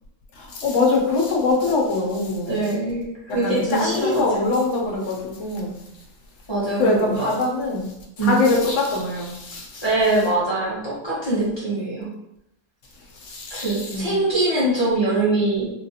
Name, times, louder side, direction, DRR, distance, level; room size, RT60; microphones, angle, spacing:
voice 1, 0.4-2.7 3.3-5.7 6.8-9.8 13.1-14.2, left 3 dB, 60° left, -1 dB, 1.0 m, -23 dB
voice 2, 2.5-4.2 4.5-4.6 6.5-7.3 8.2-8.4 9.8-12.1 13.5-15.7, right 2 dB, 25° left, -9 dB, 0.8 m, -23 dB
3.9 x 2.4 x 2.7 m, 0.85 s
omnidirectional pair, 1.5 m